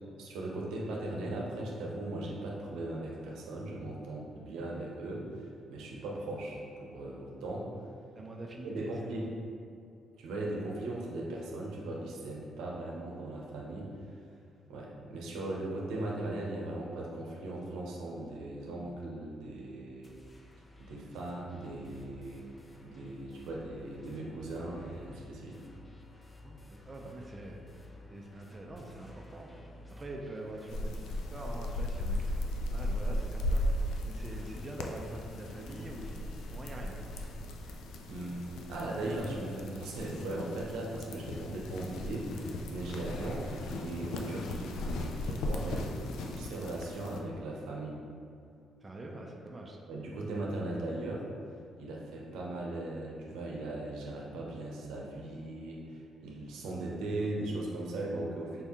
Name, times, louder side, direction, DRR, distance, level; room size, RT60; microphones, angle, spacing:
voice 1, 0.2-5.2 5.7-7.7 8.6-9.3 10.2-13.9 14.7-20.2 20.8-22.4 22.8-25.6 37.6-37.7 38.1-45.9 46.2-48.0 49.9-51.2 51.8-58.6, right 2 dB, 90° right, -3 dB, 0.7 m, -38 dB
voice 2, 8.1-9.2 26.4-26.6 26.9-27.6 28.1-29.5 30.0-30.9 31.3-33.7 34.0-37.0 48.8-49.8, right 1 dB, 25° right, 0 dB, 0.5 m, -44 dB
sound 1, 20.0-37.5, equal, 20° left, 0.6 m, -52 dB
sound 2, 30.7-47.2, left 1 dB, 85° left, 0.3 m, -37 dB
4.5 x 2.7 x 3.6 m, 2.4 s
cardioid pair, 90°, 0 cm